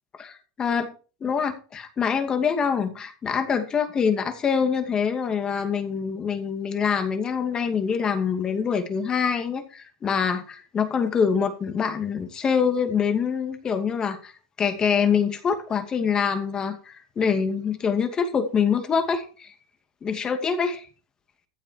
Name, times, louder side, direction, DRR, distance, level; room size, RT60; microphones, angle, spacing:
voice 1, 0.2-0.9 1.2-14.3 14.6-19.5 20.0-20.8, left 6 dB, 25° left, 7 dB, 2.5 m, -25 dB
15.0 x 7.6 x 4.7 m, 0.36 s
supercardioid pair, 120°, 3 cm